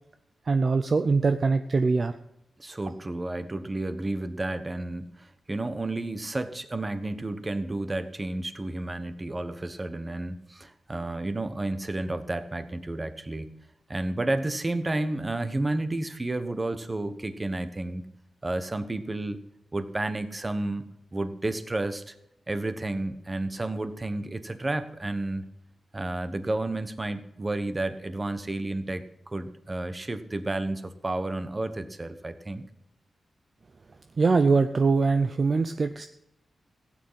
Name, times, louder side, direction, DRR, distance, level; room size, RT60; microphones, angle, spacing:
voice 1, 0.5-2.1 34.2-36.1, right 4 dB, 40° right, 9 dB, 0.6 m, -22 dB
voice 2, 2.6-13.6 13.9-18.1 18.4-19.4 19.7-20.8 21.1-22.1 22.5-25.5 25.9-32.6, right 2 dB, 20° right, 10 dB, 1.1 m, -31 dB
16.0 x 9.0 x 5.7 m, 0.81 s
wide cardioid pair, 135°, 0 cm